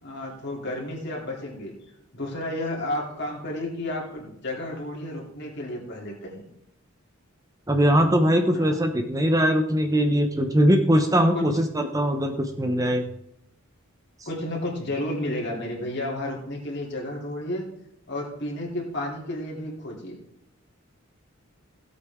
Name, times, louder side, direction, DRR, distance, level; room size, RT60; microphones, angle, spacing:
voice 1, 0.0-1.7 2.1-6.4 8.5-8.7 11.3-11.5 14.2-17.7 18.1-20.2, left 1 dB, 55° left, -2 dB, 3.2 m, -32 dB
voice 2, 7.7-13.1, equal, 15° right, 5 dB, 0.8 m, -21 dB
16.5 x 8.2 x 3.6 m, 0.75 s
head